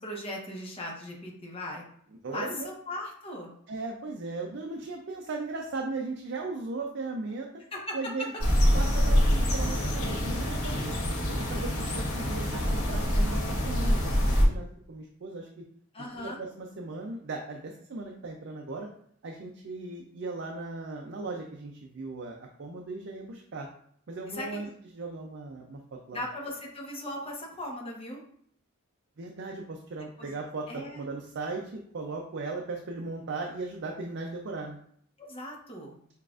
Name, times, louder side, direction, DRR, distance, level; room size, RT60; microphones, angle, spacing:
voice 1, 0.0-1.8 2.3-3.5 7.7-8.0 15.9-16.4 24.3-24.6 26.1-28.2 30.2-30.3 30.7-31.0 35.2-36.0, left 1 dB, 25° left, -1 dB, 0.8 m, -38 dB
voice 2, 2.2-2.7 3.7-7.5 7.9-8.3 8.7-10.9 11.3-15.6 16.2-18.9 19.2-23.7 24.1-24.7 24.9-26.2 29.2-34.8, right 3 dB, 55° right, 1 dB, 0.5 m, -37 dB
sound 1, 8.4-14.4, equal, 75° left, 1.0 m, -25 dB
6.8 x 2.4 x 2.4 m, 0.64 s
head